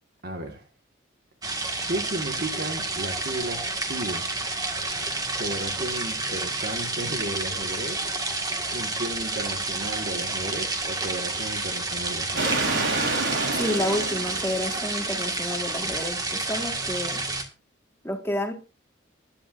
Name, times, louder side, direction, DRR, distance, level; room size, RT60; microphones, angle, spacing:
voice 1, 0.2-0.7 1.9-4.3 5.3-8.1 8.7-12.7, right 1 dB, 50° right, 1.7 m, -34 dB
sound 1, 1.4-17.4, right 3 dB, 20° right, 1.7 m, -30 dB
sound 2, 12.4-15.7, right 3 dB, 70° right, 3.7 m, -29 dB
voice 2, 13.5-17.2 18.0-18.5, left 1 dB, 10° left, 1.7 m, -30 dB
21.0 x 10.5 x 2.6 m
head